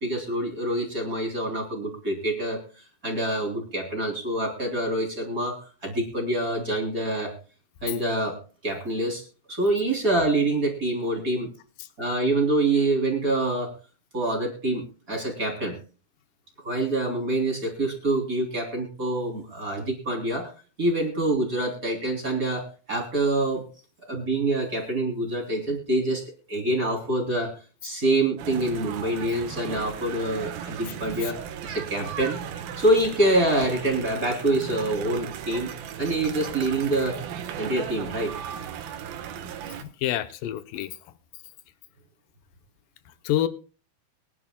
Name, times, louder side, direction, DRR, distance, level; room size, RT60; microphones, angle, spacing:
voice 1, 0.0-7.3 7.8-9.2 9.5-11.5 12.0-13.7 14.1-15.8 16.6-20.5 20.8-23.6 24.1-26.2 26.5-27.5 27.8-32.4 32.8-35.7 36.0-37.2 37.6-38.3, right 2 dB, 25° right, 3.1 m, -26 dB
sound 1, 28.4-39.8, right 8 dB, 80° right, 3.1 m, -36 dB
voice 2, 39.8-40.9 43.2-43.5, left 12 dB, 75° left, 2.4 m, -27 dB
23.0 x 11.0 x 2.2 m
omnidirectional pair, 4.2 m